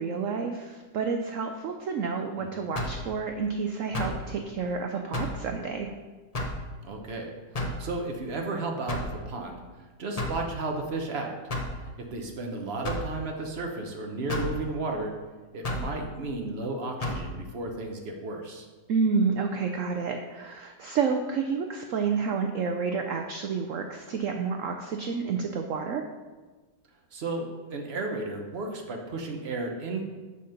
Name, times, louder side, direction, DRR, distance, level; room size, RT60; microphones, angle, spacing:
voice 1, 0.0-5.9 18.9-26.0, right 5 dB, 85° right, 5 dB, 0.7 m, -29 dB
sound 1, 2.7-3.1 3.9-4.2 5.1-5.4 6.3-6.6 7.5-7.8 8.9-9.2 10.2-10.4 11.5-11.7 12.8-13.1 14.3-14.5 15.6-15.9 17.0-17.2, left 1 dB, 55° left, 0.4 m, -31 dB
voice 2, 6.8-9.6 10.0-11.3 11.8-15.1 15.5-18.7 27.1-30.0, right 2 dB, 45° right, 2 dB, 0.9 m, -33 dB
6.5 x 5.2 x 5.8 m, 1.3 s
omnidirectional pair, 2.0 m